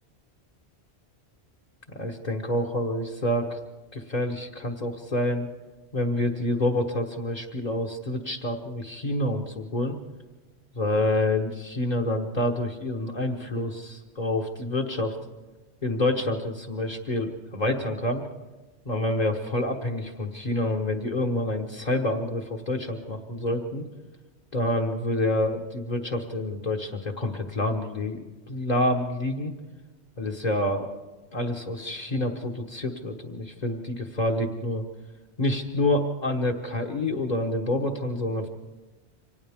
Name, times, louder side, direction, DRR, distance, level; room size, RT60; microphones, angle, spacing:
voice 1, 1.9-3.6 3.9-5.5 5.9-10.0 10.7-15.2 15.8-18.2 18.8-23.9 24.5-29.5 30.2-30.9 31.3-34.8 35.4-38.5, left 1 dB, 40° left, -1 dB, 1.4 m, -27 dB
29.0 x 25.0 x 3.6 m, 1.2 s
omnidirectional pair, 1.1 m